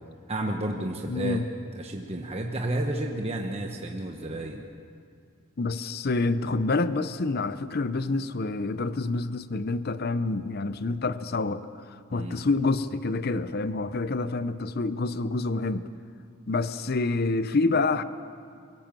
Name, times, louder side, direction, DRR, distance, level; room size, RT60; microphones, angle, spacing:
voice 1, 0.3-1.4 1.8-4.6 12.1-12.4, right 1 dB, 30° right, 1 dB, 1.1 m, -31 dB
voice 2, 1.1-1.5 5.6-15.9 16.5-18.0, left 3 dB, 45° left, 13 dB, 0.6 m, -27 dB
23.5 x 16.0 x 7.5 m, 2.3 s
head